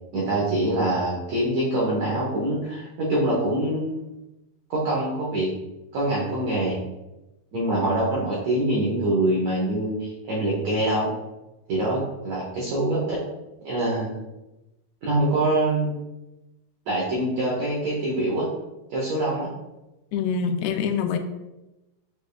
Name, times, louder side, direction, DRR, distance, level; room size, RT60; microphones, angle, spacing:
voice 1, 0.1-4.1 4.7-5.5 5.9-6.8 7.5-11.1 11.7-13.2 13.6-14.1 15.0-16.0 16.9-18.5 18.9-19.5, right 1 dB, 85° right, -5 dB, 1.5 m, -24 dB
voice 2, 20.1-21.2, left 6 dB, 90° left, 6 dB, 2.5 m, -25 dB
7.1 x 3.3 x 2.3 m, 0.99 s
omnidirectional pair, 4.4 m